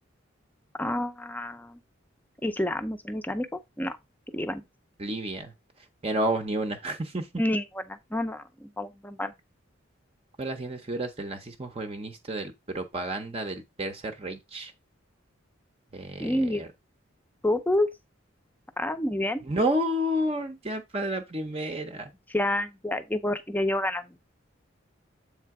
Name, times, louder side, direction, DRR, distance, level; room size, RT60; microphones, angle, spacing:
voice 1, 0.8-1.8 2.4-4.0 4.3-4.6 7.4-9.3 16.2-16.6 17.4-17.9 18.8-19.4 22.3-24.1, left 1 dB, 10° left, 0.6 m, -28 dB
voice 2, 5.0-5.5 6.0-7.3 10.4-14.7 15.9-16.7 19.4-22.1, right 1 dB, 30° right, 0.7 m, -30 dB
7.7 x 3.3 x 4.7 m
head